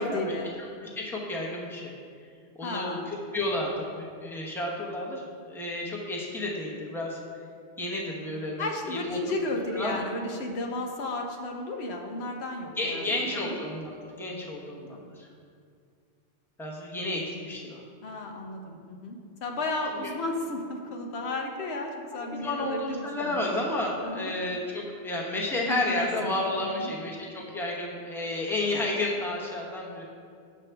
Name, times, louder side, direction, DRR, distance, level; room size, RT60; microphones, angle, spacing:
voice 1, 0.0-0.5 2.6-3.1 8.6-13.6 18.0-23.5 24.0-24.3 25.7-26.3 26.6-26.9, left 2 dB, 85° left, 2 dB, 1.0 m, -33 dB
voice 2, 0.6-2.0 2.6-7.2 7.8-9.2 9.7-10.0 12.8-15.3 16.6-17.8 22.3-30.0, left 1 dB, ahead, -3 dB, 0.8 m, -31 dB
7.3 x 6.4 x 3.4 m, 2.3 s
omnidirectional pair, 1.1 m